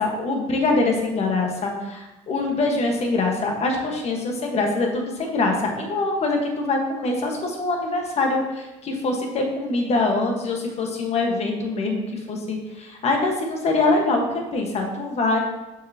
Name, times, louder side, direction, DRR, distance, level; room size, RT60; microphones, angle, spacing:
voice 1, 0.0-15.4, left 3 dB, 45° left, 2 dB, 1.4 m, -24 dB
6.7 x 6.4 x 2.9 m, 1.1 s
supercardioid pair, 100°, 16 cm